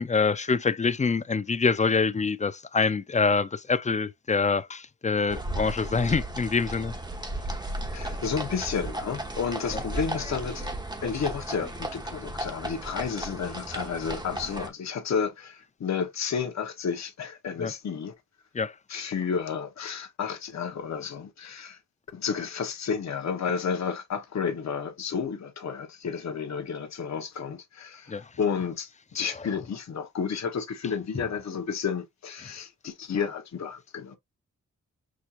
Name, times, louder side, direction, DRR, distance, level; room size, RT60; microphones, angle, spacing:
voice 1, 0.0-6.9 9.7-9.8 17.6-17.7 18.5-18.7 28.1-28.2, left 4 dB, 25° left, 0.4 m, -25 dB
sound 1, 5.3-14.7, right 1 dB, 15° right, 1.0 m, -35 dB
voice 2, 7.9-10.7 11.0-18.1 18.9-21.8 22.1-34.2, left 6 dB, 60° left, 1.1 m, -31 dB
6.3 x 2.8 x 2.5 m
cardioid pair, 75°, 30 cm